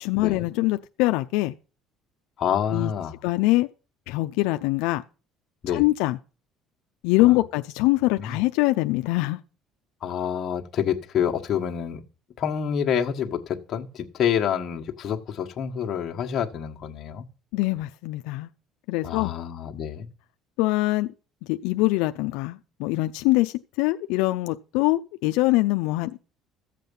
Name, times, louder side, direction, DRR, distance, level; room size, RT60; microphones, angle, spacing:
voice 1, 0.0-1.5 2.7-2.9 3.2-3.7 4.1-5.0 5.7-6.2 7.0-9.4 17.5-18.5 18.9-19.3 20.6-21.1 21.5-26.2, left 19 dB, 85° left, 0.5 m, -23 dB
voice 2, 2.4-3.1 5.6-5.8 7.2-7.4 8.2-8.4 10.0-12.0 12.4-17.2 19.0-20.1, left 8 dB, 40° left, 1.5 m, -27 dB
14.5 x 7.6 x 5.4 m
cardioid pair, 135°, 0 cm